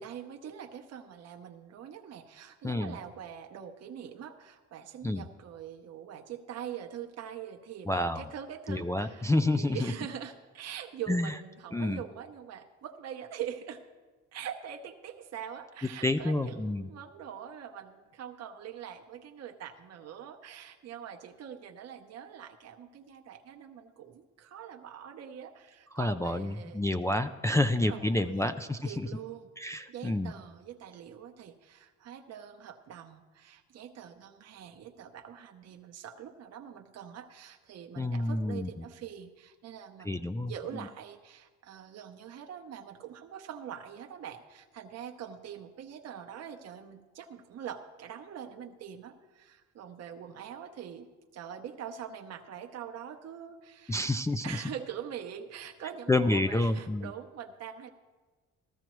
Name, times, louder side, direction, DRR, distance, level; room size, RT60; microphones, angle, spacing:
voice 1, 0.0-7.9 8.1-13.8 14.3-26.9 27.5-28.5 28.8-29.5 29.9-51.1 51.3-54.0 54.4-57.9, right 9 dB, 55° right, 4 dB, 0.8 m, -44 dB
voice 2, 2.6-3.0 5.0-5.2 7.9-8.3 8.7-9.9 11.1-11.3 11.7-12.0 16.0-16.9 25.9-29.1 29.6-30.3 38.0-38.7 40.1-40.9 53.9-54.6 56.1-57.1, left 2 dB, 10° left, 6 dB, 0.4 m, -29 dB
14.5 x 13.5 x 3.1 m, 1.3 s
cardioid pair, 90°, 30 cm